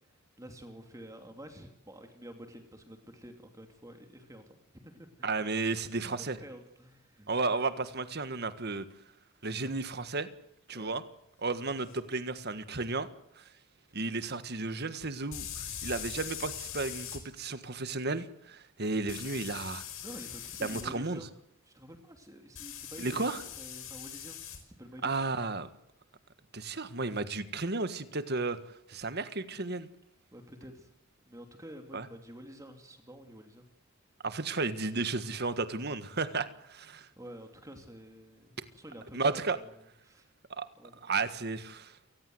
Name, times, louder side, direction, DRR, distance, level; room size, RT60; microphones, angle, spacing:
voice 1, 0.4-5.4 6.0-7.3 10.7-11.0 20.0-21.3 21.7-23.2 23.6-24.4 24.8-25.1 30.3-30.9 31.2-33.6 37.2-39.7 40.0-40.3 40.8-41.0, equal, 15° right, 5 dB, 2.8 m, -49 dB
voice 2, 5.2-6.4 7.3-8.9 9.4-10.3 10.7-11.0 11.4-13.1 13.4-13.5 13.9-19.8 20.6-21.2 23.0-23.4 25.0-25.7 26.5-28.6 28.9-29.9 31.9-32.1 34.2-37.1 39.1-39.6 40.5-40.7 41.0-42.0, right 3 dB, 55° right, 11 dB, 1.7 m, -33 dB
sound 1, 11.9-12.0 15.3-17.2 19.1-20.9 22.6-24.6, left 9 dB, 90° left, 5.4 m, -41 dB
28.5 x 19.5 x 7.9 m, 0.77 s
head